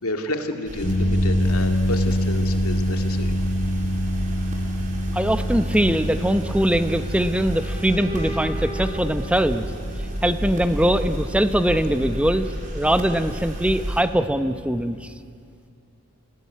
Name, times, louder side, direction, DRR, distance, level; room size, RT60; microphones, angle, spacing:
voice 1, 0.0-3.3, left 1 dB, 90° left, 5 dB, 2.3 m, -30 dB
sound 1, 0.6-14.0, equal, 40° right, 3.7 m, -31 dB
sound 2, 0.8-15.1, equal, 40° left, 5.1 m, -27 dB
voice 2, 5.1-9.7 10.2-15.1, right 1 dB, 5° right, 10 dB, 0.8 m, -22 dB
sound 3, 6.3-10.4, right 2 dB, 20° right, 3.0 m, -39 dB
28.0 x 18.5 x 9.7 m, 2.3 s
head